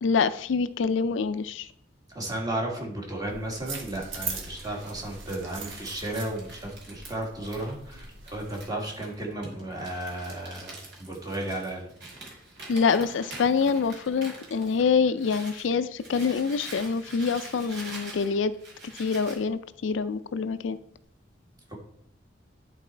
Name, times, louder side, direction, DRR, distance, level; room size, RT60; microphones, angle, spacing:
voice 1, 0.0-1.7 12.7-18.5 18.9-20.8, left 5 dB, 70° left, 13 dB, 0.4 m, -26 dB
voice 2, 2.1-11.9 21.7-21.8, right 1 dB, 20° right, -1 dB, 1.9 m, -34 dB
sound 1, 3.2-8.6, right 5 dB, 85° right, 1.4 m, -41 dB
Crumpling crinkling, 4.1-15.7 16.0-19.4, right 2 dB, 60° right, 2.9 m, -45 dB
10.5 x 4.1 x 4.4 m, 0.67 s
head